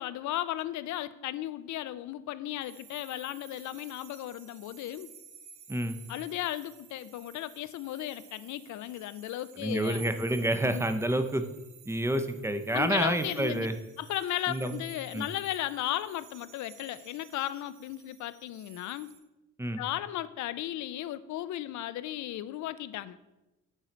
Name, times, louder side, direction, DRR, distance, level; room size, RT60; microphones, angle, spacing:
voice 1, 0.0-5.1 6.1-10.1 10.6-10.9 12.7-13.7 14.0-19.1 19.8-23.2, left 13 dB, 70° left, 15 dB, 0.5 m, -35 dB
sound 1, 2.6-19.2, right 7 dB, 85° right, 0.9 m, -53 dB
voice 2, 9.6-11.4 11.9-13.7 14.5-14.8 15.1-15.3 19.6-19.8, right 1 dB, 10° right, 9 dB, 0.5 m, -28 dB
8.9 x 3.8 x 4.3 m, 1.0 s
cardioid pair, 90°, 30 cm